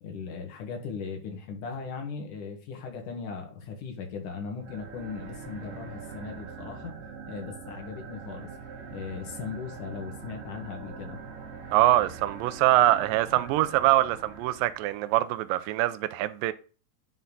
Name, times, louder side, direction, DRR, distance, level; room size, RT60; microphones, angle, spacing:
voice 1, 0.0-6.9 7.3-8.5 8.9-11.2, left 5 dB, 60° left, 2.8 m, -38 dB
sound 1, 4.6-15.0, right 5 dB, 60° right, 2.9 m, -43 dB
voice 2, 11.7-16.5, right 14 dB, 80° right, 2.0 m, -24 dB
9.5 x 4.3 x 3.9 m
omnidirectional pair, 4.6 m